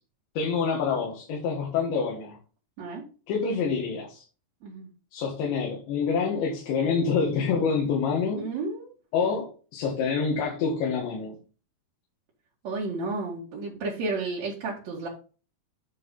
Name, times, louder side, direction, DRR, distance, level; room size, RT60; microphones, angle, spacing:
voice 1, 0.4-2.4 3.3-4.2 5.1-8.4 9.1-11.4, left 5 dB, 85° left, -1 dB, 4.1 m, -27 dB
voice 2, 8.3-8.9 12.6-15.1, right 3 dB, 50° right, -5 dB, 2.6 m, -32 dB
9.9 x 4.6 x 5.4 m, 0.37 s
omnidirectional pair, 5.1 m